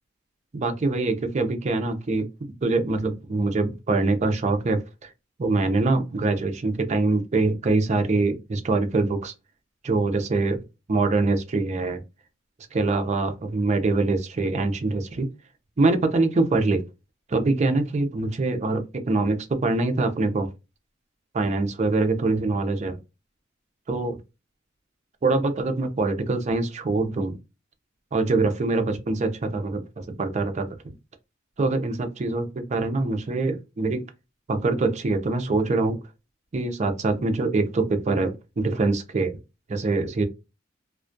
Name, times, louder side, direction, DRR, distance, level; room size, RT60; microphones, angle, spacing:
voice 1, 0.5-5.1 5.4-9.3 9.8-10.6 10.9-12.0 12.7-15.3 15.8-16.8 17.3-20.5 21.3-23.0 23.9-24.2 25.2-27.4 28.1-29.8 30.2-31.0 31.6-34.0 34.5-36.0 36.5-39.4 39.7-40.2, right 3 dB, 35° right, 0.4 m, -24 dB
2.2 x 2.1 x 2.5 m
head